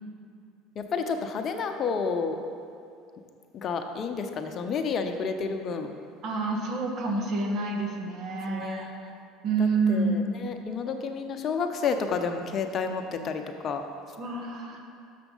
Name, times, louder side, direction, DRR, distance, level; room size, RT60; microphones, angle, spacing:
voice 1, 0.8-2.4 3.5-5.9 8.5-9.1 9.6-13.8, left 5 dB, 45° left, 6 dB, 0.7 m, -30 dB
voice 2, 6.2-8.9 9.4-10.4 14.2-14.8, right 3 dB, 55° right, 2 dB, 1.1 m, -28 dB
7.0 x 5.9 x 5.5 m, 2.4 s
hypercardioid pair, 80°, 0 cm